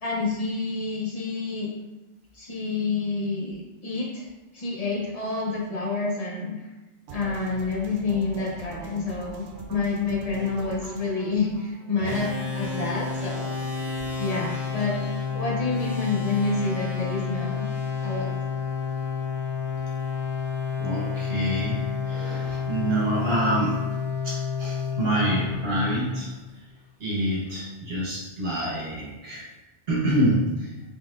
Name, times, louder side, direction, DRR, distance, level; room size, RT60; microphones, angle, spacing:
voice 1, 0.0-1.7 2.3-4.3 4.5-6.6 7.1-9.4 9.7-13.5 14.2-15.0 15.3-17.7 18.0-18.3, left 3 dB, 35° left, -4 dB, 0.8 m, -28 dB
sound 1, 7.1-13.1, right 3 dB, 85° right, 0.9 m, -43 dB
sound 2, 12.0-26.6, left 6 dB, 80° left, 1.6 m, -30 dB
voice 2, 13.8-14.1 14.7-14.9 20.8-23.8 24.2-26.3 27.0-29.4 29.9-30.7, right 1 dB, 60° right, -6 dB, 1.3 m, -27 dB
4.0 x 3.9 x 2.5 m, 1.1 s
omnidirectional pair, 1.2 m